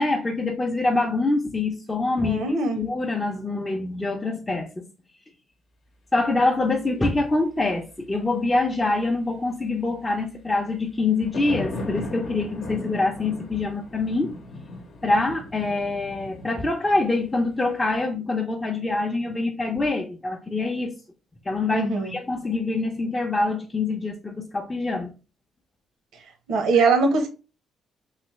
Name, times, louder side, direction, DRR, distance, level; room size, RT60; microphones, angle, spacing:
voice 1, 0.0-2.5 2.7-4.8 6.1-14.3 15.0-20.9 21.5-25.1 26.7-26.9, left 3 dB, 15° left, 0.6 m, -25 dB
voice 2, 2.2-2.8 21.7-22.1 26.5-27.3, right 4 dB, 80° right, 0.8 m, -21 dB
sound 1, 11.0-18.0, left 2 dB, 60° left, 0.8 m, -37 dB
3.2 x 2.9 x 3.1 m
cardioid pair, 90°, 0 cm